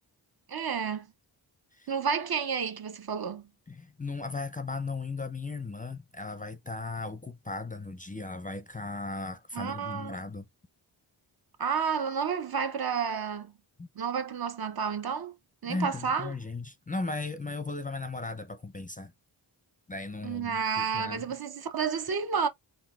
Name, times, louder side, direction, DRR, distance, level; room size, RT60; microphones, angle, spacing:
voice 1, 0.5-1.1 1.9-3.5 9.5-10.2 11.6-13.5 14.0-15.3 15.6-16.3 20.2-22.5, right 6 dB, 50° right, 0.7 m, -30 dB
voice 2, 3.7-10.5 13.8-13.9 15.7-19.1 19.9-21.2, left 3 dB, 20° left, 0.5 m, -36 dB
3.9 x 2.2 x 2.3 m
cardioid pair, 40°, 47 cm